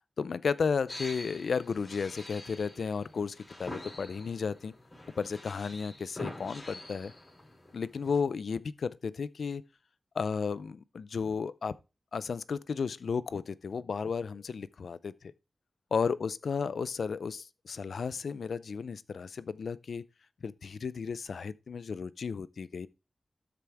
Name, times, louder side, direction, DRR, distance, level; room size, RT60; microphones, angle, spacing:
voice 1, 0.2-4.7 5.2-7.1 7.7-9.6 10.1-11.8 12.1-15.1 15.9-20.0 20.4-22.9, left 5 dB, 90° left, 0.4 m, -33 dB
sound 1, 0.9-8.2, left 1 dB, 30° left, 5.9 m, -46 dB
12.5 x 4.8 x 3.4 m
wide cardioid pair, 65°, 0 cm